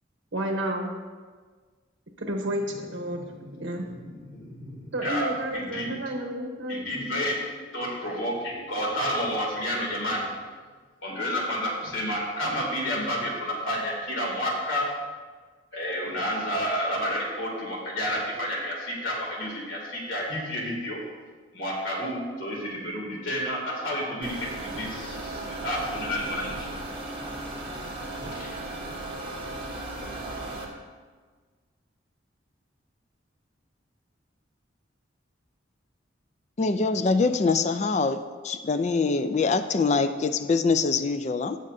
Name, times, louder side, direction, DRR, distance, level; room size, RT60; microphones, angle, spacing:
voice 1, 0.3-0.9 2.2-3.2 3.6-3.8 4.9-6.9, right 1 dB, 65° right, 2 dB, 1.1 m, -30 dB
voice 2, 2.5-6.0 6.7-7.4 7.7-10.3 11.0-14.9 15.7-21.0 21.5-26.7 28.2-28.7, equal, 85° left, -3 dB, 2.6 m, -30 dB
sound 1, 24.2-30.6, right 2 dB, 25° right, 1.4 m, -36 dB
voice 3, 36.6-38.2 38.4-41.6, left 4 dB, 35° left, 9 dB, 0.4 m, -24 dB
16.5 x 6.5 x 2.7 m, 1.5 s
head